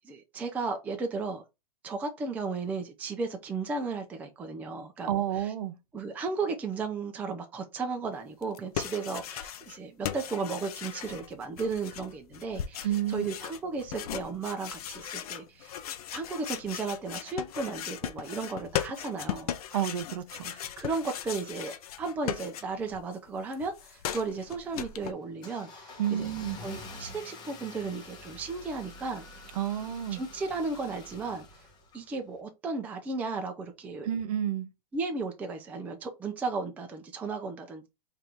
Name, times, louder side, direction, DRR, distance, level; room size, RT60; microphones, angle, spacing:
voice 1, 0.0-1.4 1.8-5.5 5.9-15.8 16.1-19.5 20.5-26.3 26.6-29.2 30.1-31.5 31.9-34.1 34.9-37.9, right 4 dB, 10° right, 0.4 m, -35 dB
voice 2, 5.1-5.8 12.8-13.3 19.7-20.5 26.0-26.6 29.6-30.2 34.0-34.7, right 10 dB, 65° right, 0.8 m, -30 dB
sound 1, 8.4-9.8 10.0-23.0 23.3-25.1, left 10 dB, 65° left, 0.5 m, -38 dB
Car / Engine starting, 24.2-32.3, left 2 dB, 20° left, 0.8 m, -47 dB
3.4 x 2.5 x 4.3 m
hypercardioid pair, 135°, 21 cm